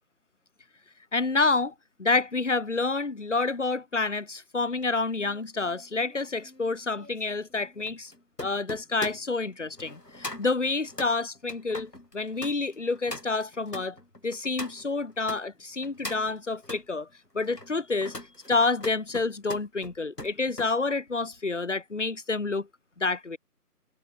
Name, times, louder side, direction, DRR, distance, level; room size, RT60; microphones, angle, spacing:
voice 1, 1.1-1.7 2.0-8.1 8.4-14.0 14.2-17.1 17.3-18.1 18.5-22.7 23.0-23.4, left 3 dB, 50° left, 4.7 m, -28 dB
sound 1, 4.8-15.4 15.8-16.9 17.4-20.7 21.1-21.4, left 1 dB, 90° left, 5.3 m, -42 dB
figure-of-eight pair, 160°, 47 cm